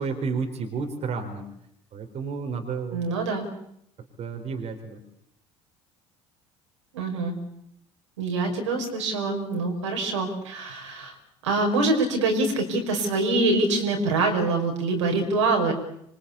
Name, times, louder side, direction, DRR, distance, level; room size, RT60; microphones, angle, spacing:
voice 1, 0.0-1.4 1.9-3.0 4.2-5.0, right 5 dB, 45° right, 4 dB, 4.3 m, -31 dB
voice 2, 2.9-3.5 6.9-7.4 8.2-11.1 11.4-15.7, right 3 dB, 75° right, 3 dB, 5.5 m, -25 dB
26.5 x 24.0 x 8.4 m, 0.74 s
figure-of-eight pair, 60°, 15 cm